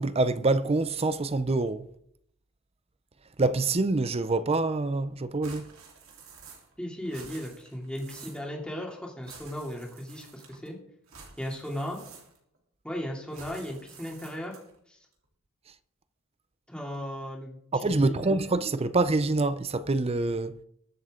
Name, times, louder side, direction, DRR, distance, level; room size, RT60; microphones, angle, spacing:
voice 1, 0.0-1.9 3.4-5.7 17.7-20.6, right 3 dB, 30° right, 0.6 m, -26 dB
sound 1, 5.4-6.8 7.0-8.5 9.2-10.7 11.1-12.6 13.3-14.8, right 5 dB, 75° right, 3.5 m, -50 dB
voice 2, 6.8-10.8 11.4-12.0 12.8-14.6 14.9-15.0 16.7-18.2, equal, 5° left, 2.9 m, -36 dB
22.0 x 8.0 x 3.8 m
head